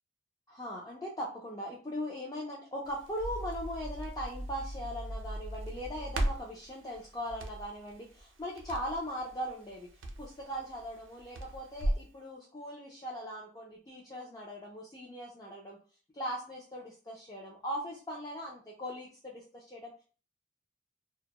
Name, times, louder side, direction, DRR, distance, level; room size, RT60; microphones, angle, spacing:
voice 1, 0.5-9.9 10.2-15.8 16.1-20.0, equal, 20° left, -4 dB, 0.4 m, -40 dB
Crackle, 2.9-12.1, right 1 dB, 90° right, 0.5 m, -38 dB
2.2 x 2.0 x 2.8 m, 0.39 s
head